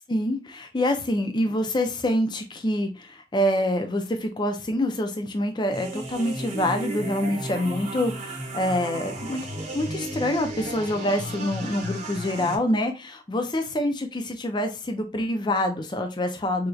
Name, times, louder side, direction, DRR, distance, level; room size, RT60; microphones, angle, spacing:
voice 1, 0.1-16.7, left 1 dB, 25° left, 6 dB, 0.5 m, -26 dB
sound 1, 5.7-12.5, right 1 dB, 40° right, 0.9 m, -34 dB
4.3 x 2.6 x 2.3 m, 0.28 s
head